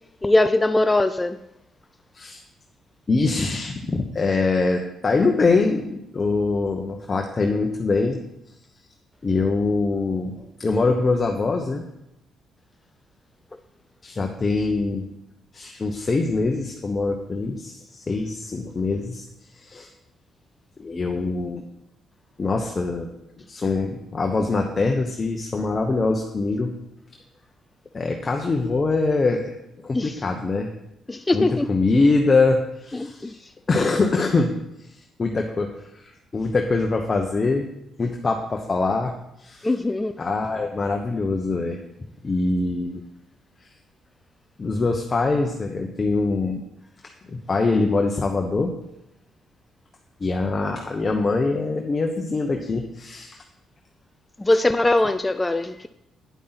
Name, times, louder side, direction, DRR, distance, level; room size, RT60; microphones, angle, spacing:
voice 1, 0.2-1.4 29.9-30.2 31.1-31.7 32.9-33.5 39.6-40.2 54.4-55.9, left 2 dB, 15° left, 9 dB, 0.4 m, -21 dB
voice 2, 3.1-8.2 9.2-11.8 14.0-15.1 15.5-19.2 19.6-19.9 20.8-21.6 22.4-23.1 23.5-26.7 27.9-29.5 29.8-30.7 31.3-33.4 33.7-34.6 35.2-37.7 38.0-39.7 40.2-41.8 42.2-43.0 44.6-46.6 47.3-48.7 50.2-53.4, left 3 dB, 30° left, 2 dB, 1.0 m, -23 dB
9.3 x 8.3 x 4.1 m, 0.85 s
cardioid pair, 90°, 0 cm